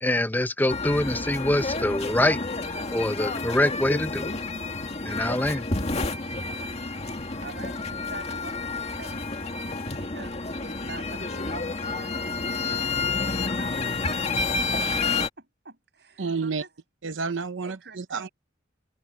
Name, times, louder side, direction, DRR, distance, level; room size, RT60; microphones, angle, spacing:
voice 1, 0.0-2.4 2.9-4.3 5.0-5.7, left 1 dB, 10° left, 0.6 m, -24 dB
sound 1, 0.7-15.3, left 3 dB, 35° left, 2.1 m, -30 dB
voice 2, 7.3-9.3 9.9-12.6 13.4-14.0 14.3-14.4 14.7-16.7 17.6-18.3, right 3 dB, 60° right, 6.5 m, -45 dB
voice 3, 16.2-16.6 17.0-18.3, right 4 dB, 85° right, 0.9 m, -30 dB
head